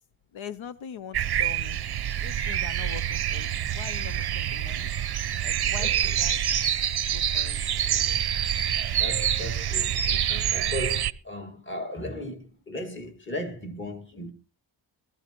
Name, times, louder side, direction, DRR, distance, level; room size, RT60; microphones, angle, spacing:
voice 1, 0.3-1.8 2.2-4.9 5.4-6.5 7.1-8.2 14.1-14.2, left 8 dB, 80° left, 0.8 m, -42 dB
sound 1, 1.1-11.1, right 10 dB, 55° right, 0.6 m, -26 dB
voice 2, 5.8-6.2 9.0-14.3, left 1 dB, 25° left, 2.1 m, -36 dB
19.0 x 14.0 x 3.0 m
wide cardioid pair, 175°, 46 cm